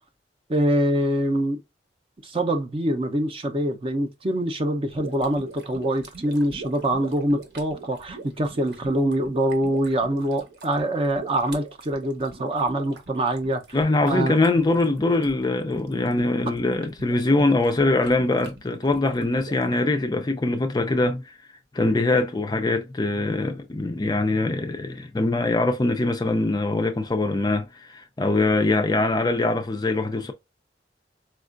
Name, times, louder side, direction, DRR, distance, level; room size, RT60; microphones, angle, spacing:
voice 1, 0.5-1.6 2.2-13.6 14.0-14.4, right 1 dB, 30° right, 0.5 m, -24 dB
sound 1, 4.9-19.7, right 3 dB, 65° right, 1.0 m, -42 dB
voice 2, 13.7-21.3 21.7-30.3, left 2 dB, 20° left, 0.3 m, -23 dB
4.3 x 2.4 x 2.4 m
head